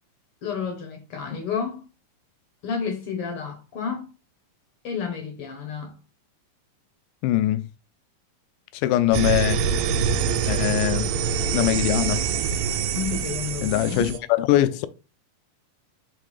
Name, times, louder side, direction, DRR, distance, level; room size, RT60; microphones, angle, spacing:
voice 1, 0.4-1.8 2.6-4.1 4.8-5.9 12.9-14.1, left 6 dB, 65° left, 1.4 m, -30 dB
voice 2, 7.2-7.7 8.8-9.6 10.5-11.1 11.5-12.2 13.6-14.9, left 14 dB, 80° left, 2.0 m, -22 dB
sound 1, 9.1-14.2, right 6 dB, 80° right, 1.6 m, -25 dB
5.9 x 3.4 x 4.9 m
omnidirectional pair, 4.0 m